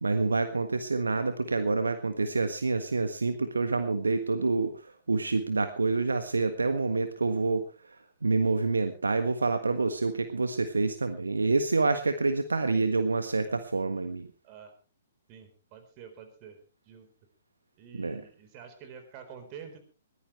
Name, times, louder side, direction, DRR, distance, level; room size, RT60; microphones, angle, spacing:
voice 1, 0.0-4.7 5.1-7.6 8.2-14.3 17.9-18.2, right 3 dB, 75° right, 9 dB, 1.5 m, -27 dB
voice 2, 15.3-16.6 16.9-17.1 17.8-19.8, right 7 dB, 30° right, 7 dB, 4.3 m, -47 dB
21.0 x 15.5 x 3.3 m, 0.35 s
figure-of-eight pair, 120°, 0 cm